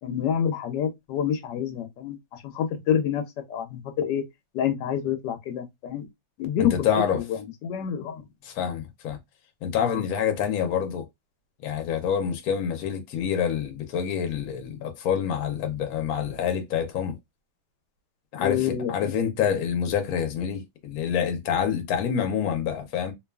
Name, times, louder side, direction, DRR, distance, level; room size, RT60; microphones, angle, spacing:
voice 1, 0.0-3.2 3.5-4.2 4.5-6.1 6.4-6.7 7.1-8.2 9.8-10.0 18.4-19.1, left 9 dB, 85° left, 1.2 m, -28 dB
voice 2, 6.6-7.2 8.4-9.2 9.6-11.0 11.6-17.2 18.3-23.1, left 8 dB, 65° left, 1.0 m, -27 dB
2.8 x 2.3 x 2.2 m
omnidirectional pair, 1.8 m